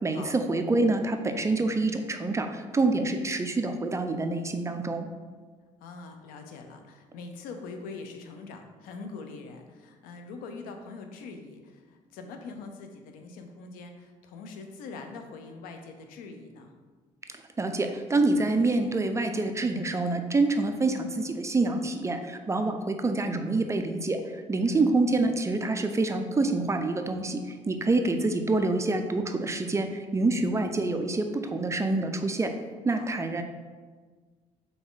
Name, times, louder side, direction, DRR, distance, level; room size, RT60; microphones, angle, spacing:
voice 1, 0.0-5.1 17.6-32.5 32.8-33.4, right 2 dB, 20° right, 6 dB, 0.4 m, -26 dB
voice 2, 5.8-16.7 24.7-24.9 32.9-33.1, left 4 dB, 85° left, 5 dB, 0.6 m, -43 dB
3.9 x 3.4 x 3.8 m, 1.5 s
supercardioid pair, 75°, 14 cm